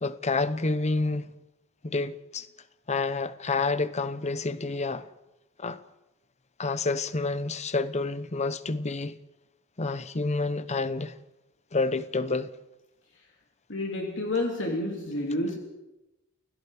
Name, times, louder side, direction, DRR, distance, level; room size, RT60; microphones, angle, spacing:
voice 1, 0.0-1.3 1.8-2.5 2.9-5.1 5.6-5.8 6.6-9.2 9.8-11.1 11.7-12.5, left 3 dB, 35° left, 0.9 m, -29 dB
voice 2, 13.7-15.6, left 1 dB, 60° left, 3.3 m, -29 dB
29.5 x 17.5 x 5.0 m
head